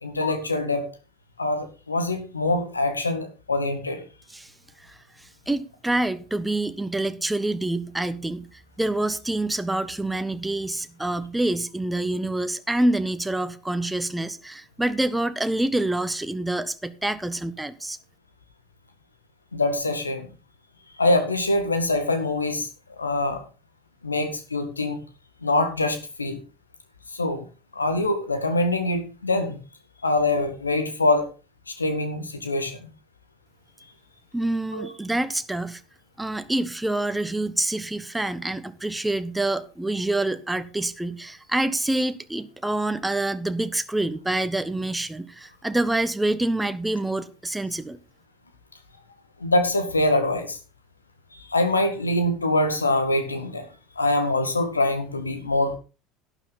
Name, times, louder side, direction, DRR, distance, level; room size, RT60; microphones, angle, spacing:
voice 1, 0.0-0.9 1.4-4.0 19.5-20.3 21.0-22.7 23.0-23.4 24.0-25.0 25.4-26.4 27.1-27.4 27.7-29.6 30.0-31.3 31.7-32.8 34.7-34.9 49.4-50.6 51.3-53.7 54.0-55.8, left 2 dB, 90° left, 1.8 m, -24 dB
voice 2, 4.8-18.0 34.3-35.8 36.2-48.0, right 2 dB, 10° right, 1.0 m, -27 dB
12.0 x 10.0 x 4.1 m
figure-of-eight pair, 70°, 0 cm